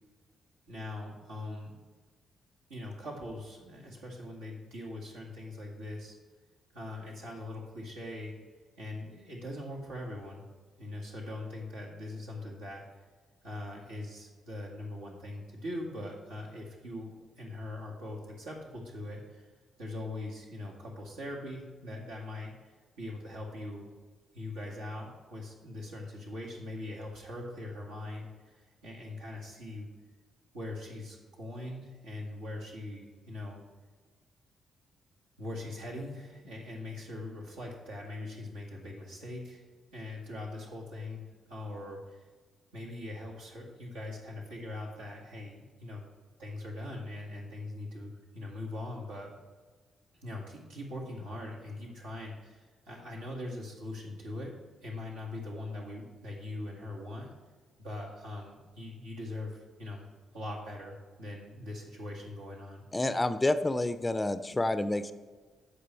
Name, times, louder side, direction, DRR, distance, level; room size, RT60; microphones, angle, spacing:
voice 1, 0.7-1.8 2.7-6.2 6.7-8.3 8.8-10.4 10.8-12.8 13.4-19.4 19.8-23.9 24.3-29.9 30.5-33.6 35.4-39.6 39.9-42.3 42.7-46.1 46.4-49.3 50.2-54.5 54.8-57.3 57.8-60.0 60.3-62.8, left 1 dB, 75° right, -4 dB, 2.1 m, -41 dB
voice 2, 62.9-65.1, left 2 dB, 20° left, 12 dB, 0.5 m, -29 dB
14.0 x 5.0 x 3.3 m, 1.4 s
figure-of-eight pair, 40°, 0 cm